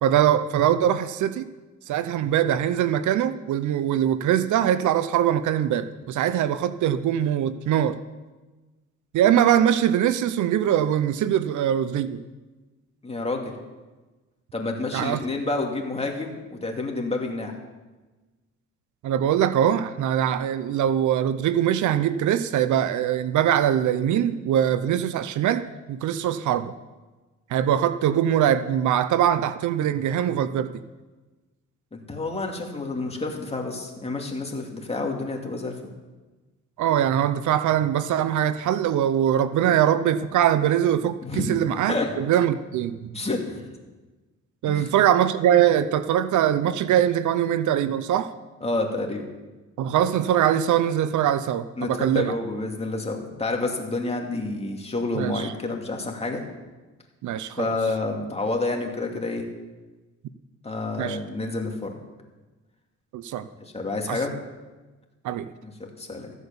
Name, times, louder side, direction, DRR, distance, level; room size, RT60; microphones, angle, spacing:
voice 1, 0.0-1.5 1.9-8.0 9.1-12.2 14.9-15.2 19.0-25.6 25.9-26.7 27.5-30.7 36.8-43.1 44.6-48.3 49.8-52.4 55.1-55.5 57.2-57.7 61.0-61.2 63.1-63.5 64.1-64.2 65.2-65.5, right 10 dB, 75° right, 13 dB, 0.7 m, -22 dB
voice 2, 13.0-13.5 14.5-17.5 31.9-35.9 41.2-41.6 41.9-42.1 43.1-43.6 44.7-44.9 48.6-49.3 51.8-56.4 57.6-59.4 60.6-61.9 63.7-64.3 65.6-65.7 66.0-66.3, left 2 dB, 20° left, 1 dB, 2.6 m, -29 dB
14.5 x 8.0 x 7.1 m, 1.2 s
cardioid pair, 90°, 30 cm